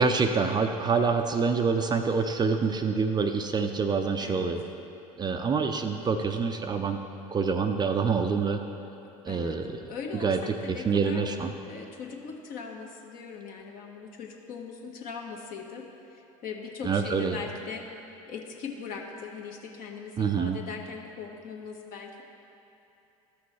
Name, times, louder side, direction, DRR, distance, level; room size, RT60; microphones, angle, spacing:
voice 1, 0.0-4.6 5.2-7.0 7.3-8.6 9.3-9.7 10.2-10.4 10.7-11.5 16.8-17.4 20.2-20.6, right 5 dB, 25° right, 6 dB, 0.5 m, -26 dB
voice 2, 4.2-4.5 9.0-9.6 9.9-11.2 11.6-17.9 18.3-22.2, left 5 dB, 50° left, 1 dB, 1.2 m, -40 dB
13.0 x 6.0 x 3.2 m, 3.0 s
hypercardioid pair, 80°, 18 cm